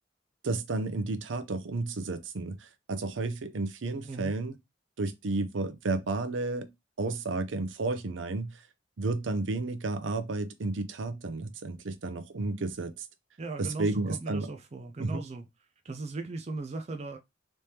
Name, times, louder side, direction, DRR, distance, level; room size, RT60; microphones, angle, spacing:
voice 1, 0.4-4.5 5.0-6.7 7.0-8.6 9.0-13.1 13.6-14.5 15.0-15.2, right 3 dB, 90° right, 0.6 m, -32 dB
voice 2, 13.4-15.5 15.8-17.2, right 3 dB, 35° right, 0.4 m, -38 dB
3.4 x 3.2 x 2.8 m
head